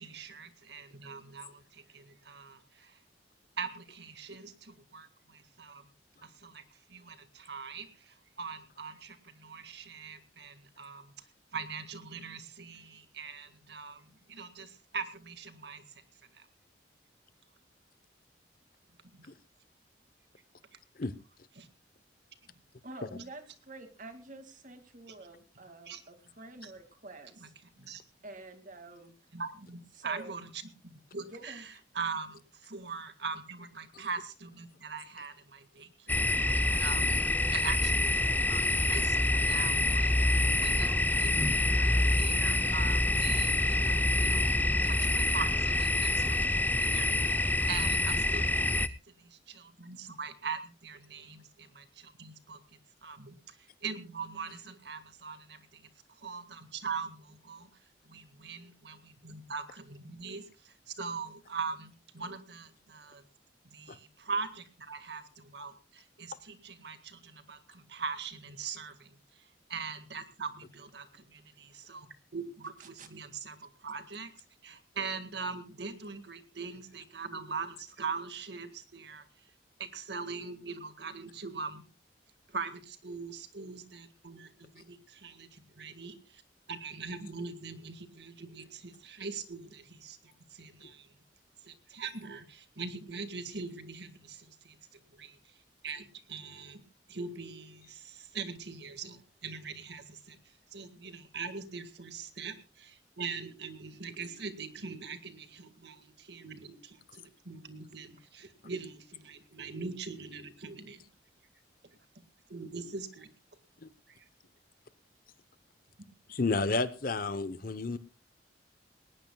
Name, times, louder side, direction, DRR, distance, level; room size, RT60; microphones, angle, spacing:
voice 1, 0.0-3.0 3.6-5.9 6.2-11.2 11.5-15.8 16.3-16.5 19.1-19.3 21.6-21.7 25.9-26.0 26.6-26.7 27.4-27.5 27.8-28.0 29.3-44.5 44.8-48.8 49.1-55.9 56.2-57.7 58.0-63.2 63.6-74.3 74.6-79.3 79.8-81.8 82.5-86.4 86.7-91.1 91.6-94.8 95.1-95.5 95.8-96.8 97.1-100.4 100.7-111.0 112.5-113.3 114.1-114.3, right 5 dB, 65° right, 9 dB, 1.9 m, -42 dB
voice 2, 22.8-27.5 28.2-29.2 29.9-30.4 31.2-31.7 72.8-73.1, right 2 dB, 45° right, 8 dB, 2.4 m, -48 dB
sound 1, 36.1-48.9, left 2 dB, 10° left, 0.6 m, -27 dB
voice 3, 116.3-118.0, left 3 dB, 50° left, 15 dB, 0.9 m, -31 dB
19.5 x 18.5 x 2.3 m, 0.32 s
head